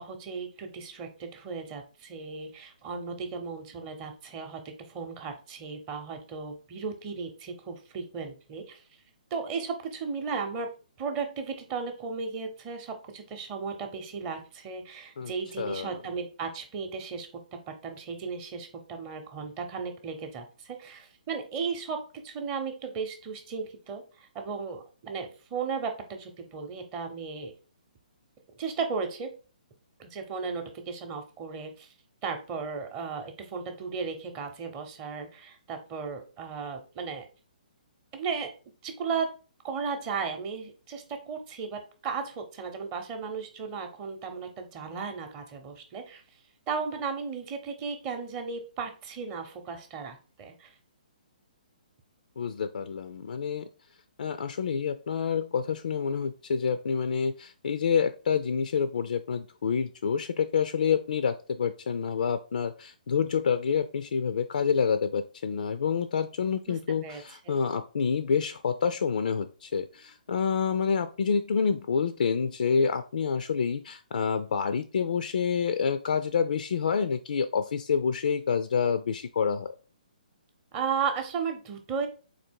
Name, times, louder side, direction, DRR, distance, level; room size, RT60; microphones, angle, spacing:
voice 1, 0.0-8.8 9.3-10.7 11.0-17.3 17.7-22.0 22.2-27.5 28.6-29.3 30.0-31.9 32.2-37.2 38.1-38.5 38.8-39.3 39.6-46.2 46.7-50.7 66.7-66.8 67.0-67.6 80.7-82.1, right 5 dB, 25° right, 5 dB, 0.7 m, -35 dB
voice 2, 15.6-16.0 52.4-53.7 54.2-79.7, left 6 dB, 70° left, 10 dB, 0.4 m, -28 dB
4.0 x 2.8 x 4.5 m, 0.35 s
hypercardioid pair, 150°, 5 cm